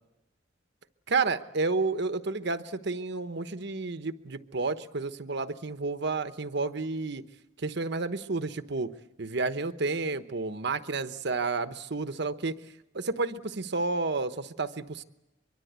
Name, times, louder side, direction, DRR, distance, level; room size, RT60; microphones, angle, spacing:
voice 1, 1.1-7.2 7.6-8.9 9.2-12.5 12.9-15.0, right 3 dB, 65° right, 10 dB, 1.1 m, -31 dB
23.5 x 23.5 x 8.2 m, 0.96 s
head